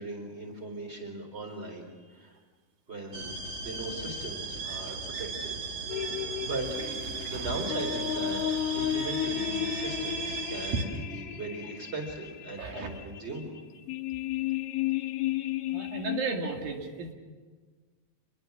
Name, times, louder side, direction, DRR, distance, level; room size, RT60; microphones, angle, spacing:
voice 1, 0.0-2.4 2.9-5.5 6.0-6.9 7.2-13.6, right 2 dB, 15° right, 4 dB, 4.2 m, -39 dB
sound 1, 3.1-10.8, right 5 dB, 40° right, 2.6 m, -36 dB
Water / Toilet flush, 5.6-10.6 10.9-11.0 11.8-11.9 13.2-13.3, left 1 dB, 25° left, 3.4 m, -50 dB
sound 2, 5.9-16.4, left 12 dB, 75° left, 1.3 m, -33 dB
voice 2, 7.1-7.6 12.6-12.9 15.7-17.1, right 4 dB, 80° right, 3 dB, 3.9 m, -35 dB
27.0 x 21.0 x 7.4 m, 1.4 s
omnidirectional pair, 4.0 m